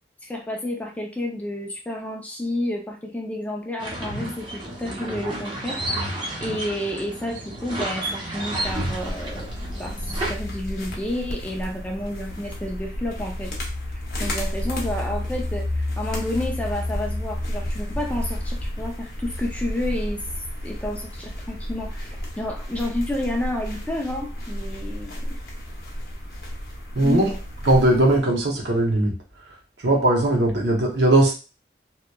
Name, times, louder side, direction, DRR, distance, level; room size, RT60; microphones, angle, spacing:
voice 1, 0.2-5.8 6.4-9.5 9.8-13.5 14.2-20.2 20.6-25.4 27.0-27.4, left 1 dB, 10° left, 2 dB, 0.3 m, -30 dB
sound 1, 3.8-10.3, right 1 dB, 25° right, 0.7 m, -31 dB
sound 2, 8.6-28.2, left 1 dB, 60° left, 0.7 m, -31 dB
voice 2, 26.9-27.3 27.6-29.2 29.8-31.4, right 1 dB, 75° right, 0 dB, 0.8 m, -19 dB
2.8 x 2.1 x 2.2 m, 0.33 s
head